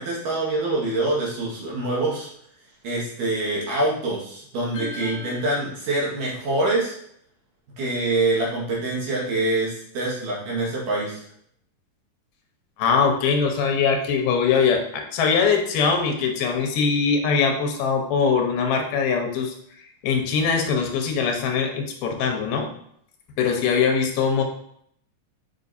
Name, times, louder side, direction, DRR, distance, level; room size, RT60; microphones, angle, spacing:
voice 1, 0.0-2.3 2.8-7.0 7.8-11.2, right 2 dB, 60° right, -5 dB, 3.1 m, -25 dB
voice 2, 4.7-5.4 12.8-22.7 23.4-24.4, left 5 dB, 90° left, 3 dB, 2.9 m, -22 dB
7.7 x 5.4 x 2.7 m, 0.68 s
omnidirectional pair, 4.3 m